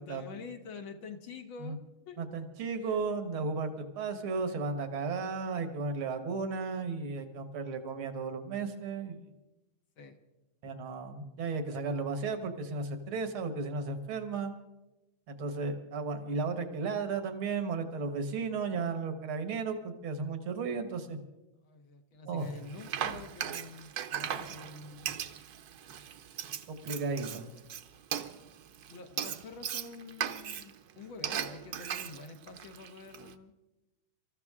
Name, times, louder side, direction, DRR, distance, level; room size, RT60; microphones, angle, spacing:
voice 1, 0.0-2.2 2.8-3.0 10.0-10.2 21.6-25.2 28.9-33.5, left 4 dB, 75° left, 5 dB, 2.2 m, -47 dB
voice 2, 2.2-9.2 10.6-14.5 15.3-21.2 22.3-22.5 26.7-27.5, right 4 dB, 85° right, 8 dB, 2.3 m, -34 dB
Frying (food), 22.4-33.3, right 9 dB, 60° right, 1.1 m, -38 dB
26.0 x 14.0 x 3.7 m, 1.0 s
omnidirectional pair, 2.3 m